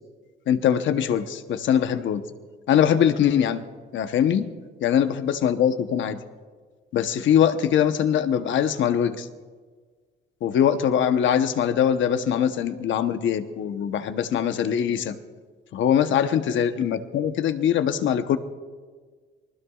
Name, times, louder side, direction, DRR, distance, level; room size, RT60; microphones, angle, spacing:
voice 1, 0.5-2.2 2.7-3.6 3.9-4.5 4.8-6.2 6.9-9.3 10.4-15.2 15.7-18.4, left 9 dB, 75° left, 9 dB, 1.0 m, -22 dB
27.0 x 20.5 x 2.4 m, 1.5 s
cardioid pair, 90°, 20 cm